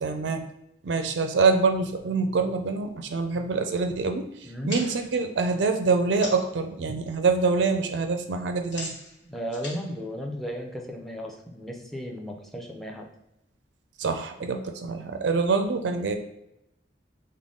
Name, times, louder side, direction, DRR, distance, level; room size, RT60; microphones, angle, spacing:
voice 1, 0.0-0.4 0.8-4.2 4.6-8.9 14.0-16.2, right 4 dB, 85° right, 6 dB, 0.4 m, -25 dB
voice 2, 4.4-4.8 9.2-13.1, equal, ahead, 2 dB, 0.4 m, -35 dB
sound 1, 4.7-6.6 7.0-7.4 7.7-11.0, left 2 dB, 80° left, 1.2 m, -41 dB
3.7 x 2.1 x 3.6 m, 0.82 s
head